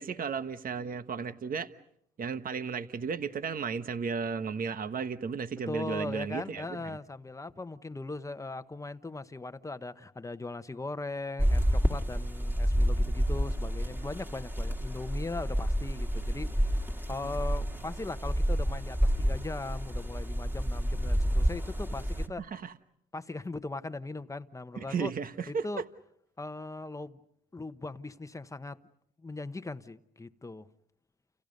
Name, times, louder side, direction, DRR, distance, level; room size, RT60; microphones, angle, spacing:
voice 1, 0.0-1.7 2.2-7.0 17.2-17.3 22.4-22.7 24.8-25.8, right 6 dB, 45° right, 1.3 m, -34 dB
voice 2, 5.7-22.5 23.1-25.1 25.5-25.8 26.4-27.2 27.5-28.8 29.2-30.7, left 2 dB, 15° left, 1.1 m, -39 dB
sound 1, 11.4-22.3, equal, 10° right, 2.2 m, -29 dB
29.5 x 29.5 x 5.4 m
cardioid pair, 90°, 20 cm